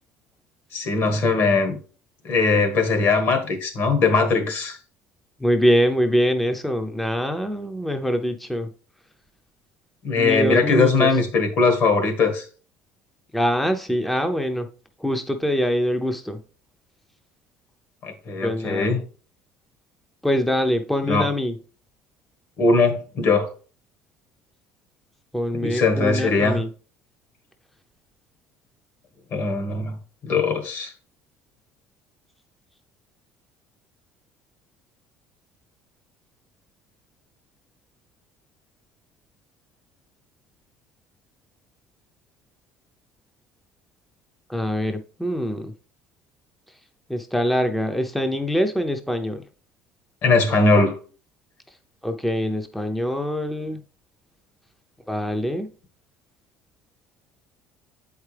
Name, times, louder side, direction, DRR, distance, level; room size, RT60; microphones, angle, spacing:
voice 1, 0.7-1.8 2.2-4.8 10.0-12.5 18.0-19.0 21.0-21.3 22.6-23.5 25.5-26.6 29.3-30.0 30.2-30.9 50.2-50.9, left 3 dB, 55° left, 1.6 m, -20 dB
voice 2, 5.4-8.7 10.1-11.1 13.3-14.7 15.0-16.4 18.4-18.9 20.2-21.6 25.3-26.7 44.5-45.7 47.1-49.4 52.0-53.8 55.1-55.7, equal, ahead, 0.5 m, -24 dB
8.1 x 4.7 x 3.3 m
cardioid pair, 135°, 5 cm